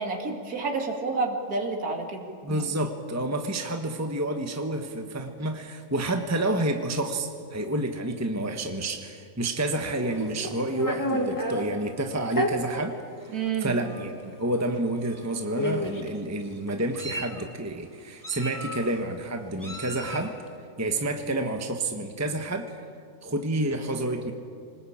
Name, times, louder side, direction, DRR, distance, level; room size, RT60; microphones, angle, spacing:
voice 1, 0.0-2.6 13.3-13.8, right 4 dB, 70° right, 2 dB, 2.9 m, -29 dB
voice 2, 2.4-12.9 13.6-20.3 20.8-22.8 23.2-24.3, right 1 dB, 10° right, 5 dB, 1.3 m, -29 dB
Meow, 10.0-11.6 12.3-12.5 13.4-13.5 13.8-14.1 15.1-15.2 15.6-16.1 16.7-17.4 18.2-19.0 19.6-20.3, equal, 10° left, 2.2 m, -31 dB
25.5 x 20.0 x 8.8 m, 2.3 s
omnidirectional pair, 1.6 m